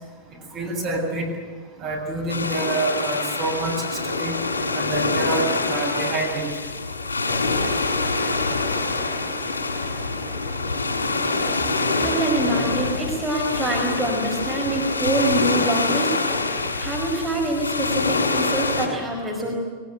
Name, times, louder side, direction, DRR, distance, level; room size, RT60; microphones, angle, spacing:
voice 1, 0.5-1.3 1.8-4.3 4.7-6.5, right 2 dB, 40° right, 1 dB, 7.5 m, -27 dB
sound 1, 2.3-18.9, left 3 dB, 70° left, 6.7 m, -25 dB
voice 2, 12.0-16.2 16.8-19.5, right 1 dB, 10° right, -2 dB, 5.1 m, -25 dB
22.0 x 20.5 x 9.2 m, 1.5 s
figure-of-eight pair, 90°, 0 cm